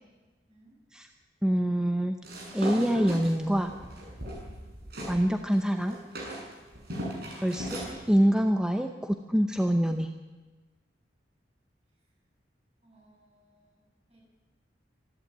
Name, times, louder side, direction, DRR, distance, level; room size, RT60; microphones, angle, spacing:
voice 1, 0.5-0.8 4.4-4.7 6.8-7.1 12.8-14.2, right 1 dB, 35° right, -1 dB, 7.6 m, -61 dB
voice 2, 1.4-2.2 2.5-3.7 5.1-6.0 7.4-10.1, equal, 5° right, 5 dB, 0.8 m, -25 dB
sound 1, 2.2-5.2 5.5-7.9, right 1 dB, 60° right, 7.5 m, -38 dB
25.5 x 11.5 x 9.0 m, 1.2 s
head